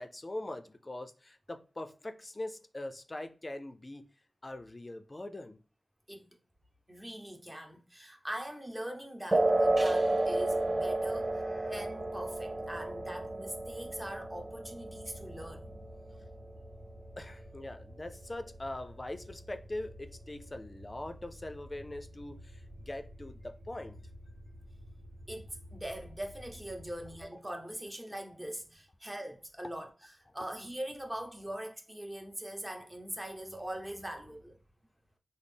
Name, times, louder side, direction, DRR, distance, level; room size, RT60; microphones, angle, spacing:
voice 1, 0.0-4.1 4.4-5.6 11.3-11.7 17.2-24.0, left 1 dB, 35° left, 0.4 m, -42 dB
voice 2, 6.9-11.3 11.6-15.7 25.3-25.5 25.7-34.6, right 1 dB, 15° right, 0.8 m, -42 dB
sound 1, 9.3-16.3, right 2 dB, 40° right, 0.4 m, -31 dB
sound 2, 9.5-27.3, equal, 85° right, 0.9 m, -51 dB
3.9 x 2.0 x 3.4 m
wide cardioid pair, 55°, 0 cm